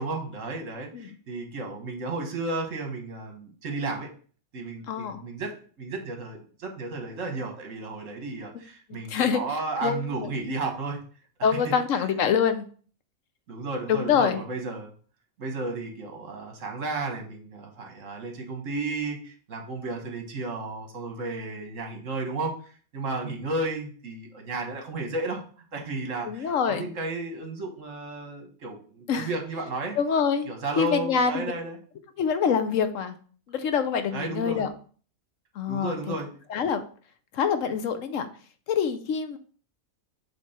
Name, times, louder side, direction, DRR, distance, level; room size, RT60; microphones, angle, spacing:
voice 1, 0.0-4.1 4.5-5.5 5.8-11.0 11.5-12.0 13.5-14.9 15.4-25.4 25.7-30.0 30.5-31.8 34.1-34.7 35.7-36.3, right 3 dB, 65° right, 3 dB, 1.7 m, -33 dB
voice 2, 4.9-5.2 9.1-9.4 9.8-10.3 11.4-12.7 13.9-14.4 26.2-26.9 29.1-29.3 30.0-30.5 30.8-31.5 32.2-33.1 33.5-34.7 35.6-36.2 36.5-36.8 37.3-38.3 38.7-39.4, left 7 dB, 70° left, 9 dB, 1.0 m, -25 dB
7.6 x 3.3 x 4.3 m, 0.43 s
omnidirectional pair, 1.4 m